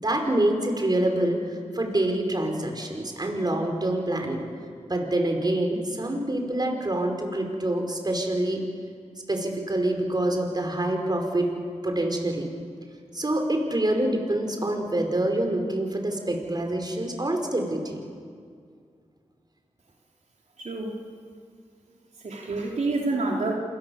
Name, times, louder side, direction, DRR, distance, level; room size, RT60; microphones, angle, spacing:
voice 1, 0.0-4.4 4.9-8.6 9.3-11.5 11.8-12.5 13.1-18.0, right 1 dB, 35° right, 3 dB, 5.2 m, -26 dB
voice 2, 20.6-21.0 22.2-23.5, right 3 dB, 80° right, -2 dB, 3.6 m, -28 dB
28.5 x 21.5 x 7.3 m, 2.2 s
cardioid pair, 50°, 12 cm